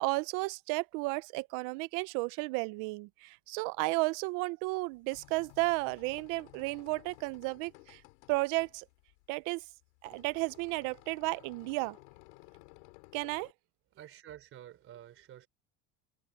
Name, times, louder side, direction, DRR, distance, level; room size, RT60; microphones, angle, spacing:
voice 1, 0.0-8.0 8.3-8.9 9.3-9.6 10.0-12.0 13.1-13.5, right 25 dB, 70° right, 0.7 m, -33 dB
sound 1, 4.8-13.5, left 29 dB, 85° left, 5.9 m, -57 dB
voice 2, 13.9-15.5, right 11 dB, 40° right, 3.8 m, -50 dB
cardioid pair, 145°, 34 cm